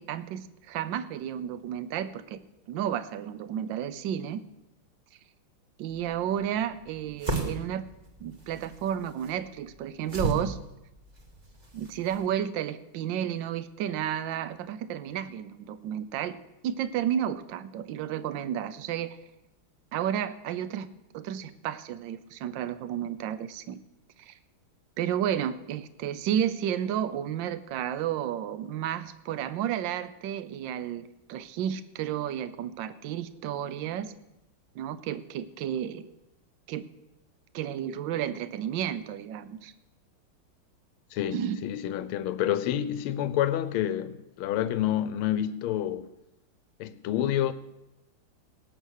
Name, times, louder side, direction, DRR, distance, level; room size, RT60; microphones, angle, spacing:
voice 1, 0.0-2.4 2.7-4.4 5.8-7.8 8.2-10.6 11.7-16.4 16.6-19.2 19.9-20.9 21.1-23.8 24.2-24.4 25.0-34.1 34.7-36.0 36.7-36.9 37.5-39.7 41.3-41.6, right 10 dB, 70° right, 1.4 m, -32 dB
sound 1, 5.9-12.3, right 2 dB, 20° right, 1.6 m, -36 dB
voice 2, 41.1-46.1 46.8-47.5, left 11 dB, 90° left, 1.5 m, -28 dB
18.0 x 8.1 x 6.5 m
omnidirectional pair, 2.3 m